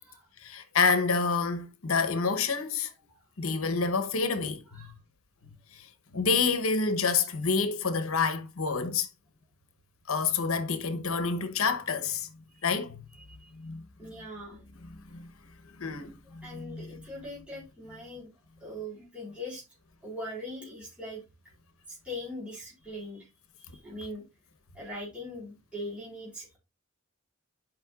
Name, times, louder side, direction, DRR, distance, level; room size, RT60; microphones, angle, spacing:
voice 1, 0.4-2.9 3.4-4.9 5.7-5.9 6.1-9.1 10.1-12.3 12.6-13.0 13.5-14.1 14.8-15.3 15.8-16.9, left 5 dB, 80° left, 1.0 m, -28 dB
voice 2, 14.0-14.6 16.2-18.3 18.6-19.6 20.0-21.2 21.9-23.3 23.8-24.2 24.7-26.6, left 1 dB, 5° right, 4.1 m, -41 dB
11.0 x 5.3 x 2.4 m
head